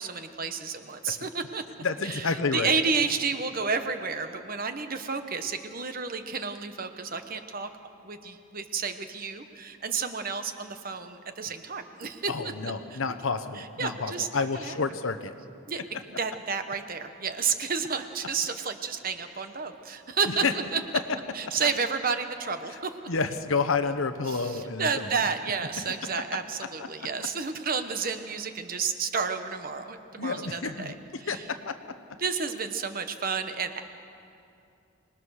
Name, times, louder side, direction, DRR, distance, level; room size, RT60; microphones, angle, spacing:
voice 1, 0.0-1.6 2.0-7.7 8.0-12.3 12.9-13.0 13.6-14.8 15.7-15.8 16.2-20.4 20.7-20.8 21.3-22.9 24.3-30.9 31.2-31.4 32.2-33.8, right 5 dB, 45° right, 8 dB, 1.1 m, -31 dB
voice 2, 1.8-2.7 12.3-15.3 15.7-15.8 20.3-20.5 23.1-25.3 26.8-26.9 30.2-30.9 31.3-31.8, left 4 dB, 75° left, 10 dB, 1.0 m, -30 dB
25.5 x 19.5 x 6.5 m, 2.6 s
head